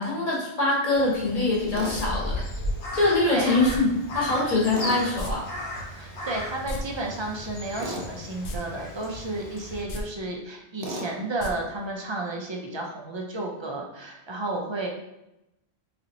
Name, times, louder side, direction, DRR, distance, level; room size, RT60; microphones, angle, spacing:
voice 1, 0.0-2.4 2.9-5.4, left 2 dB, 35° left, -4 dB, 1.1 m, -24 dB
Crow, 0.9-9.8, left 1 dB, 85° left, 1.2 m, -36 dB
Tools, 1.7-2.0 4.7-5.1 7.8-8.1 10.8-11.1, right 1 dB, 70° right, 0.9 m, -34 dB
sound 1, 1.9-2.1 3.6-3.8 5.2-5.3 5.6-5.7 6.5-6.8 8.4-8.6 9.0-9.1 9.8-10.0 11.4-11.5 11.8-11.9, left 1 dB, 60° left, 0.7 m, -34 dB
voice 2, 6.0-14.9, right 2 dB, 40° right, 0 dB, 0.4 m, -32 dB
4.0 x 2.9 x 2.6 m, 0.89 s
omnidirectional pair, 1.1 m